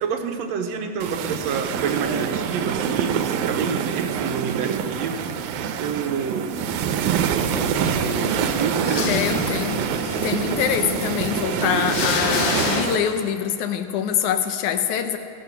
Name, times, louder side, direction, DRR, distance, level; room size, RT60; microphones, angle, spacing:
voice 1, 0.0-6.5 7.3-9.3, right 6 dB, 70° right, 5 dB, 1.8 m, -28 dB
sound 1, 1.0-13.0, right 8 dB, 85° right, 2.2 m, -26 dB
sound 2, 2.0-5.0, left 3 dB, 25° left, 1.8 m, -42 dB
sound 3, 7.3-12.8, left 5 dB, 60° left, 1.7 m, -29 dB
voice 2, 9.1-9.9 10.2-15.2, left 8 dB, 85° left, 8 dB, 2.3 m, -24 dB
16.5 x 13.0 x 5.9 m, 2.3 s
omnidirectional pair, 3.4 m